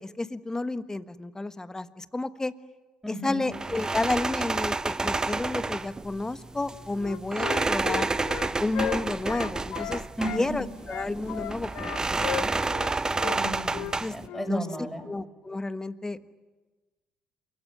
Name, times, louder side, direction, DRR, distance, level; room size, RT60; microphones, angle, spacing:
voice 1, 0.0-2.5 3.1-8.1 8.6-10.0 10.3-12.6 14.0-14.1 14.4-14.7 15.1-16.2, left 2 dB, 20° left, 12 dB, 1.4 m, -31 dB
voice 2, 3.0-3.5 10.2-10.6 13.2-15.1, equal, ahead, 5 dB, 6.3 m, -34 dB
sound 1, 3.5-14.3, right 3 dB, 20° right, 0.9 m, -30 dB
Wind instrument woodwind instrument, 7.0-10.4 10.9-12.9 13.2-13.4 13.7-13.9 14.2-14.5, left 13 dB, 65° left, 0.8 m, -35 dB
28.5 x 17.0 x 10.0 m, 1.2 s
hypercardioid pair, 55°, 3 cm